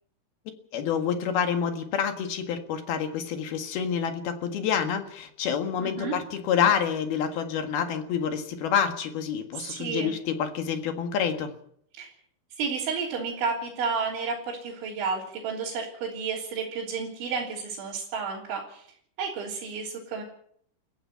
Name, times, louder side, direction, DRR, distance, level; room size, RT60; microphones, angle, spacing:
voice 1, 0.7-11.5, left 7 dB, 65° left, 6 dB, 3.3 m, -28 dB
voice 2, 5.8-6.2 9.5-10.1 11.9-12.1 12.6-18.9 19.2-20.2, right 5 dB, 85° right, -5 dB, 5.8 m, -31 dB
30.0 x 15.5 x 5.8 m, 0.66 s
omnidirectional pair, 5.2 m